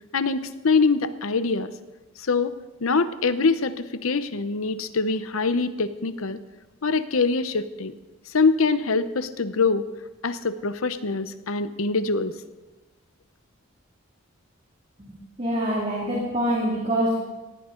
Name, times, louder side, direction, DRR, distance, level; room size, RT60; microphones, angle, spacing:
voice 1, 0.1-1.7 2.2-2.5 2.8-6.4 6.8-7.9 8.3-9.8 10.2-12.3, left 4 dB, 75° left, 12 dB, 0.8 m, -24 dB
voice 2, 15.0-17.2, right 1 dB, 30° right, -3 dB, 2.3 m, -25 dB
19.0 x 15.0 x 3.8 m, 1.1 s
head